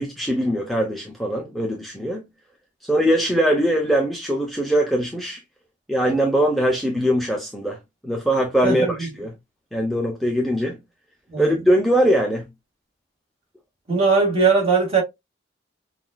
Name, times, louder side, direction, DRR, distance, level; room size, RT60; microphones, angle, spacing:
voice 1, 0.0-2.2 2.9-5.4 5.9-9.3 9.7-10.8 11.4-12.5, equal, ahead, 0.6 m, -21 dB
voice 2, 8.6-9.1 11.3-11.5 13.9-15.0, right 4 dB, 30° right, 2.1 m, -19 dB
5.8 x 2.4 x 2.3 m
head